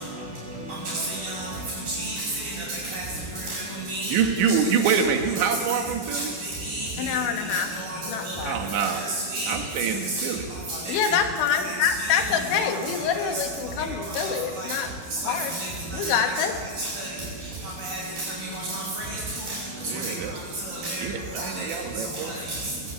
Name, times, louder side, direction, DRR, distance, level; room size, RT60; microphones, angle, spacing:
voice 1, 0.8-1.5 1.9-3.0 3.4-4.2 4.8-4.9 5.4-5.5 6.1-7.1 7.5-8.4 9.0-9.5 10.2-10.3 10.7-11.1 11.6-11.7 12.0-12.2 12.6-12.7 13.2-13.3 14.1-14.7 15.2-16.3 16.8-17.1 17.8-18.3 18.5-19.2 19.9-20.1 20.7-21.0 21.4-21.7 22.2-22.6, right 2 dB, 45° right, -8 dB, 7.9 m, -32 dB
voice 2, 4.1-6.3 8.5-9.0 9.5-10.5 19.9-20.4 20.7-22.4, right 6 dB, 70° right, 4 dB, 3.9 m, -26 dB
voice 3, 7.0-7.7 8.1-8.6 10.9-14.9 15.2-15.5 15.9-16.5, left 7 dB, 70° left, 5 dB, 3.7 m, -26 dB
22.0 x 16.5 x 8.6 m, 2.1 s
omnidirectional pair, 5.8 m